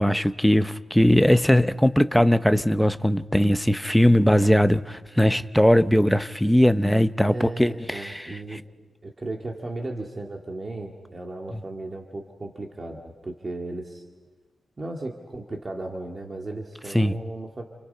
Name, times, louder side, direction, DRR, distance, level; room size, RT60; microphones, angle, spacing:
voice 1, 0.0-8.2 8.5-8.6 16.9-17.1, equal, ahead, 0.7 m, -20 dB
voice 2, 7.2-8.6 9.0-14.0 14.8-17.6, right 2 dB, 25° right, 2.2 m, -35 dB
29.5 x 29.0 x 5.7 m
wide cardioid pair, 155°, 0 cm